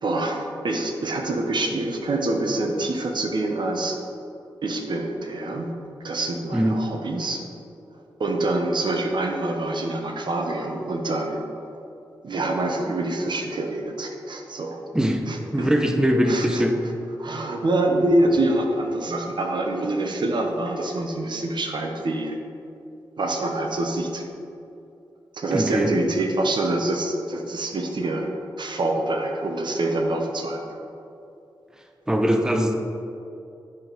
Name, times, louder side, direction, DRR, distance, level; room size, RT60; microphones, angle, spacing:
voice 1, 0.0-4.0 4.6-5.7 6.0-7.4 8.2-11.4 12.2-14.8 15.3-15.7 16.3-16.6 17.2-22.4 23.2-24.2 25.3-28.3 28.6-30.6, right 2 dB, 60° right, 3 dB, 0.9 m, -25 dB
voice 2, 15.5-16.8 25.5-25.9 32.1-32.7, equal, 5° right, 4 dB, 0.7 m, -21 dB
10.0 x 4.1 x 4.6 m, 2.7 s
cardioid pair, 50°, 9 cm